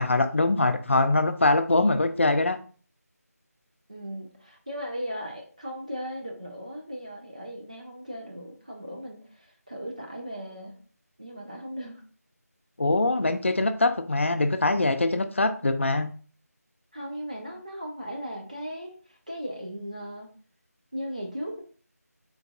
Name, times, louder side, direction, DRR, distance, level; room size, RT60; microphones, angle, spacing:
voice 1, 0.0-2.6 12.8-16.1, left 2 dB, 50° left, 9 dB, 0.3 m, -23 dB
voice 2, 3.9-10.7 11.2-12.0 16.9-20.3 20.9-21.6, equal, 25° right, 0 dB, 0.4 m, -37 dB
3.8 x 2.7 x 2.3 m, 0.40 s
figure-of-eight pair, 175°, 9 cm